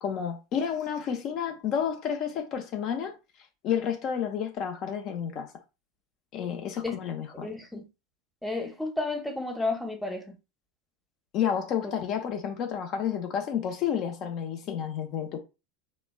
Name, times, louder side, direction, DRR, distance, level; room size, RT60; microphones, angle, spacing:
voice 1, 0.0-3.1 3.6-5.5 6.3-7.5 11.3-15.4, left 8 dB, 45° left, 0.5 m, -30 dB
voice 2, 7.4-7.9 8.4-10.4, left 2 dB, ahead, 0.8 m, -32 dB
3.0 x 2.1 x 2.2 m
figure-of-eight pair, 80°, 0 cm